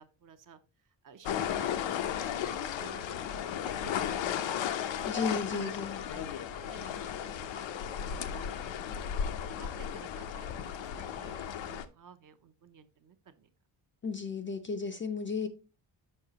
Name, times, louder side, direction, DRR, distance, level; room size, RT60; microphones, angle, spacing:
voice 1, 0.0-5.1 5.5-5.7 6.1-6.2 6.5-9.1 9.5-13.5, right 7 dB, 45° right, 0.7 m, -53 dB
sound 1, 1.3-11.9, left 9 dB, 85° left, 0.7 m, -35 dB
voice 2, 5.0-6.0 14.0-15.5, left 4 dB, 30° left, 0.4 m, -34 dB
6.5 x 5.5 x 2.8 m
wide cardioid pair, 155°, 44 cm